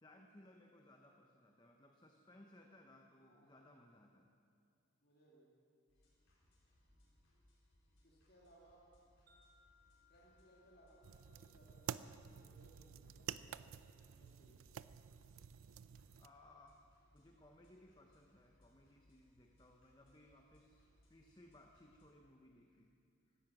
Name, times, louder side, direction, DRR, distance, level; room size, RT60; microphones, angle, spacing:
voice 1, 0.0-4.3 16.2-16.8 17.1-22.9 23.3-23.4, left 1 dB, 20° left, 2 dB, 0.8 m, -63 dB
voice 2, 3.2-3.7 5.0-5.5 8.0-9.0 10.1-11.9 12.4-13.8 14.1-14.7, right 1 dB, 50° left, -4 dB, 2.2 m, -67 dB
sound 1, 5.9-22.1, left 1 dB, 75° left, 4.4 m, -73 dB
Wind chime, 9.3-13.6, left 4 dB, 55° right, 4.3 m, -75 dB
sound 2, 11.0-16.3, right 8 dB, 90° right, 0.4 m, -50 dB
16.5 x 12.5 x 6.1 m, 2.5 s
head